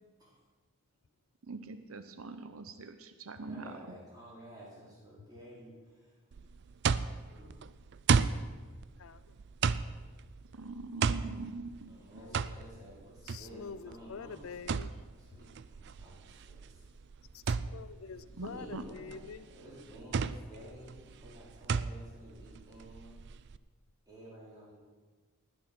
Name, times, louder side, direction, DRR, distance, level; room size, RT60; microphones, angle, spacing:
voice 1, 1.5-3.7 10.5-12.2 18.4-18.8, right 3 dB, 85° right, 10 dB, 0.7 m, -43 dB
voice 2, 3.3-6.0 7.3-7.5 11.9-14.4 15.2-16.8 18.2-19.2 19.5-23.2 24.1-24.7, right 1 dB, 20° right, -7 dB, 4.3 m, -52 dB
sound 1, 6.3-23.6, right 5 dB, 55° right, 0.4 m, -34 dB
voice 3, 12.2-12.6 13.2-14.9 17.3-19.5, left 5 dB, 80° left, 15 dB, 0.5 m, -46 dB
19.5 x 6.8 x 6.0 m, 1.4 s
head